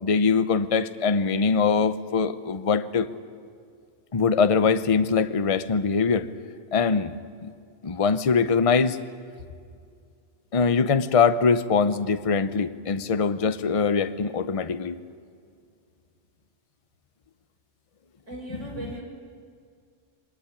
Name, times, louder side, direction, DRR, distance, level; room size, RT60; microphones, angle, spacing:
voice 1, 0.0-3.1 4.1-6.3 6.7-7.5 7.8-9.0 10.5-15.0, left 5 dB, 35° left, 11 dB, 0.7 m, -22 dB
voice 2, 18.3-19.0, right 1 dB, 80° right, 0 dB, 5.9 m, -37 dB
23.0 x 19.0 x 9.9 m, 2.2 s
omnidirectional pair, 1.3 m